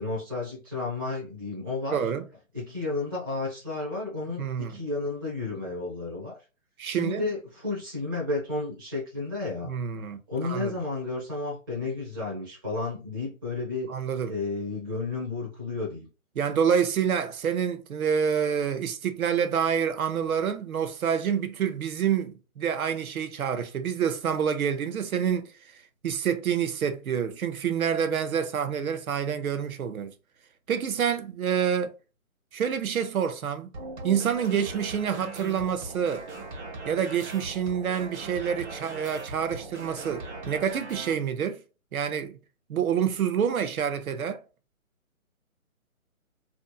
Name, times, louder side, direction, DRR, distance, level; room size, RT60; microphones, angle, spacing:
voice 1, 0.0-2.0 2.5-6.4 6.9-9.7 10.3-13.9 14.3-16.1, left 3 dB, 15° right, 0.8 m, -32 dB
voice 2, 1.9-2.2 4.4-4.8 6.8-7.2 9.6-10.7 13.9-14.3 16.4-30.1 30.7-32.0 32.5-33.7 34.0-36.2 36.9-41.6 41.9-42.4 42.7-44.4, right 8 dB, 90° right, 0.6 m, -27 dB
sound 1, 33.7-41.1, right 3 dB, 55° right, 1.0 m, -39 dB
2.6 x 2.5 x 2.3 m
hypercardioid pair, 165°, 41 cm